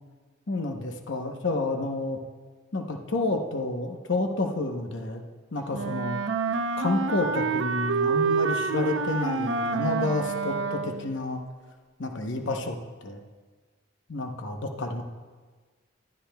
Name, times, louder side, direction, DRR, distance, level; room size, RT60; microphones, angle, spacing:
voice 1, 0.5-2.2 2.7-5.2 5.5-6.2 6.8-11.4 12.0-13.2 14.1-15.0, left 2 dB, 75° left, 3 dB, 0.9 m, -30 dB
Wind instrument woodwind instrument, 5.7-11.2, right 5 dB, 80° right, 0.6 m, -27 dB
20.5 x 12.5 x 2.3 m, 1.4 s
head